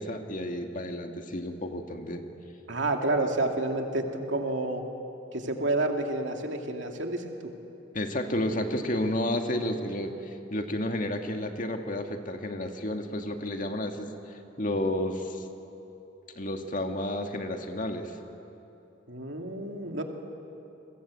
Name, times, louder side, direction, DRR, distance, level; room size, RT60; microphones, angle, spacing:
voice 1, 0.0-2.2 7.9-14.1 14.6-15.4 16.4-18.1, left 1 dB, 45° left, 4 dB, 1.9 m, -31 dB
voice 2, 2.7-4.8 5.3-7.5 19.1-20.0, right 2 dB, 75° right, 3 dB, 2.5 m, -29 dB
30.0 x 22.0 x 8.5 m, 3.0 s
head